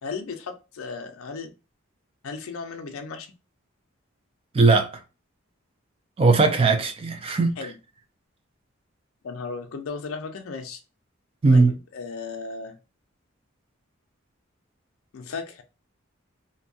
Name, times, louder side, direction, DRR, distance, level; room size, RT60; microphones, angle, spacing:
voice 1, 0.0-1.5 2.2-3.3 7.6-7.8 9.2-10.8 11.5-12.7 15.1-15.6, left 4 dB, 80° left, 0.4 m, -35 dB
voice 2, 4.5-4.9 6.2-7.5 11.4-11.7, right 3 dB, 25° right, 0.3 m, -18 dB
2.6 x 2.2 x 2.6 m
head